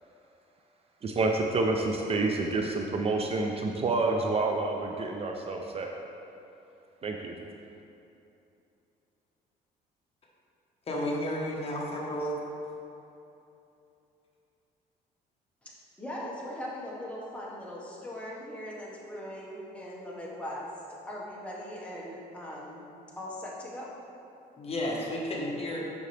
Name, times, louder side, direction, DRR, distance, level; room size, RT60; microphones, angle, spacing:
voice 1, 1.0-5.9 7.0-7.4, right 3 dB, 35° right, 2 dB, 0.5 m, -28 dB
voice 2, 10.9-12.4 24.6-25.8, left 1 dB, 35° left, -3 dB, 1.3 m, -32 dB
voice 3, 15.6-22.9 23.2-23.9, left 1 dB, 5° left, -5 dB, 1.4 m, -40 dB
7.5 x 5.6 x 3.3 m, 2.8 s
cardioid pair, 110°, 17 cm